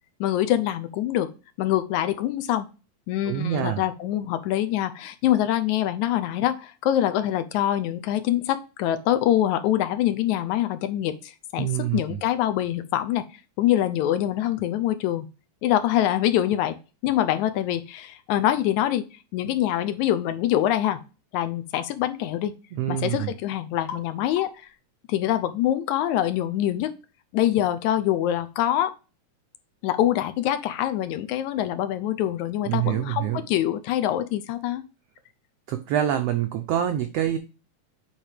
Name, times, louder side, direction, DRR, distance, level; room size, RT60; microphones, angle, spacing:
voice 1, 0.2-1.3 1.6-2.7 3.1-13.2 13.6-15.3 15.6-16.8 17.0-19.0 19.3-21.0 21.3-22.5 22.9-24.5 25.1-26.9 27.3-28.9 29.8-34.8, left 12 dB, 75° left, 10 dB, 1.9 m, -24 dB
voice 2, 3.2-3.8 11.6-12.2 22.7-23.3 32.6-33.4 35.7-37.4, right 11 dB, 90° right, 7 dB, 1.4 m, -26 dB
sound 1, 20.8-21.0 21.7-22.0 23.9-24.1 24.4-24.7, left 6 dB, 50° left, 2.7 m, -37 dB
8.7 x 3.5 x 5.0 m, 0.31 s
omnidirectional pair, 3.6 m